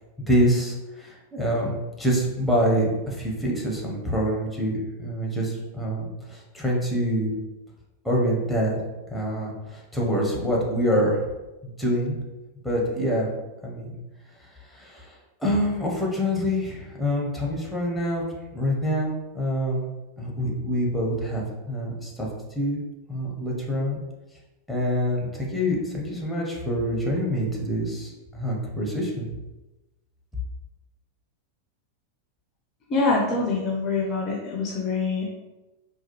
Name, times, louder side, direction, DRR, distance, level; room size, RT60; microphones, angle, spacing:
voice 1, 0.3-7.3 8.0-8.8 9.1-11.2 11.8-12.1 12.6-13.3 13.6-14.0 14.7-15.1 15.4-18.2 18.5-19.9 20.2-22.3 22.6-22.8 23.1-24.0 24.7-29.3, equal, 5° left, -2 dB, 0.9 m, -26 dB
voice 2, 32.9-35.3, left 3 dB, 30° left, -1 dB, 0.5 m, -25 dB
4.0 x 2.4 x 2.9 m, 1.1 s
figure-of-eight pair, 90°, 0 cm